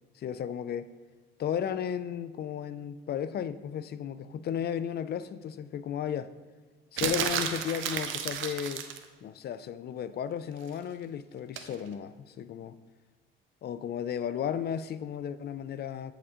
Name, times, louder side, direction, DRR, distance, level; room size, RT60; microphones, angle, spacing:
voice 1, 0.2-0.9 1.4-6.3 6.9-8.9 9.2-12.8 13.6-16.1, left 9 dB, 55° left, 15 dB, 0.4 m, -34 dB
sound 1, 7.0-9.0 11.6-11.7, right 8 dB, 80° right, 0.7 m, -32 dB
8.5 x 7.0 x 3.7 m, 1.3 s
cardioid pair, 90°, 20 cm